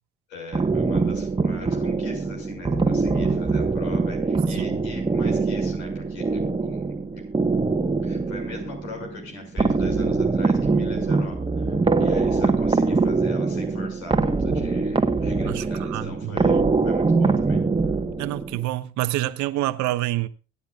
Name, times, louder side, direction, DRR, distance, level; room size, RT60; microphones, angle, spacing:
voice 1, 0.3-7.3 8.0-17.6, left 3 dB, 80° left, 6.4 m, -40 dB
sound 1, 0.5-18.6, right 4 dB, 15° right, 1.3 m, -23 dB
voice 2, 15.5-16.7 18.2-20.3, right 16 dB, 60° right, 1.1 m, -27 dB
23.5 x 10.0 x 2.5 m
hypercardioid pair, 70°, 32 cm